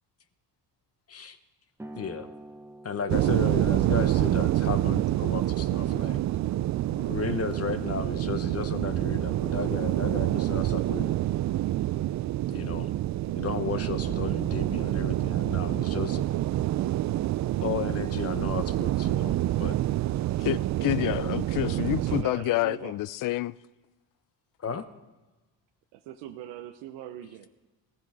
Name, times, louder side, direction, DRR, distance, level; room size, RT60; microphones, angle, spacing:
sound 1, 1.8-8.9, right 2 dB, 5° right, 1.0 m, -50 dB
voice 1, 2.0-2.3 2.8-6.2 6.9-11.2 12.5-12.9 13.3-16.2 17.6-19.8 24.6-24.8, left 6 dB, 35° left, 1.1 m, -34 dB
sound 2, 3.1-22.2, right 14 dB, 45° right, 0.4 m, -27 dB
voice 2, 20.4-23.5, left 16 dB, 50° left, 0.5 m, -28 dB
voice 3, 21.5-23.0 25.9-27.5, right 12 dB, 90° right, 0.9 m, -42 dB
16.0 x 15.0 x 4.9 m
cardioid pair, 95°, 41 cm